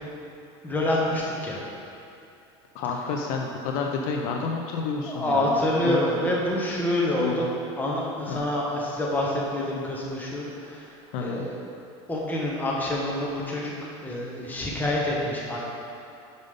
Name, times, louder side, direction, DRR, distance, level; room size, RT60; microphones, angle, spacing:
voice 1, 0.6-1.6 5.1-7.5 7.8-10.9 11.2-11.6 12.1-13.7 14.0-15.6, left 1 dB, 10° left, -4 dB, 1.4 m, -27 dB
voice 2, 2.7-5.9 7.2-7.4 8.3-8.4 11.1-11.5, left 4 dB, 65° left, 1 dB, 0.6 m, -30 dB
5.4 x 5.1 x 5.3 m, 2.7 s
supercardioid pair, 120°, 14 cm